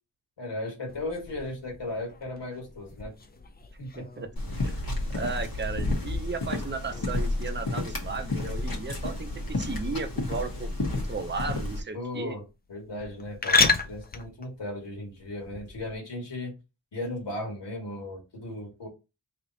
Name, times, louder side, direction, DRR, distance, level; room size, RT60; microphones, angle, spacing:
voice 1, 0.4-3.1 3.8-4.2 11.9-12.4 12.7-16.5 16.9-18.9, left 1 dB, 75° left, 1.6 m, -36 dB
sound 1, 0.9-15.9, left 4 dB, 25° left, 0.3 m, -34 dB
voice 2, 4.0-4.3 4.6-4.8 5.1-12.4, right 4 dB, 25° right, 0.6 m, -35 dB
sound 2, 4.4-11.8, left 2 dB, 55° left, 1.1 m, -31 dB
3.2 x 2.9 x 3.9 m
wide cardioid pair, 105°, 43 cm